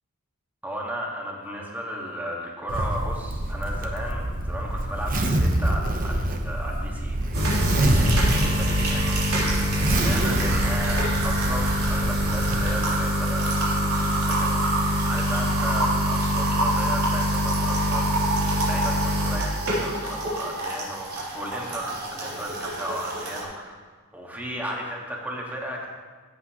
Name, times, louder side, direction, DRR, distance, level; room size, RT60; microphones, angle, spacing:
voice 1, 0.6-7.2 7.5-23.7 24.1-25.9, equal, 10° right, -2 dB, 1.6 m, -34 dB
Zipper (clothing), 2.7-12.6, right 1 dB, 40° right, 0.9 m, -26 dB
sound 1, 7.3-23.4, equal, 90° right, 3.3 m, -25 dB
15.5 x 8.1 x 3.0 m, 1.5 s
head